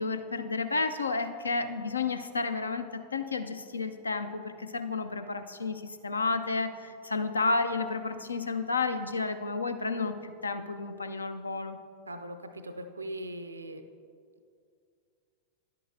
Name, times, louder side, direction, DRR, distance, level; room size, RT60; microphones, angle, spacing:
voice 1, 0.0-2.8 3.1-11.8, left 3 dB, 75° left, 9 dB, 0.4 m, -31 dB
voice 2, 12.1-13.8, right 1 dB, 80° right, 9 dB, 0.5 m, -40 dB
10.5 x 8.4 x 2.6 m, 2.3 s
figure-of-eight pair, 90°, 0 cm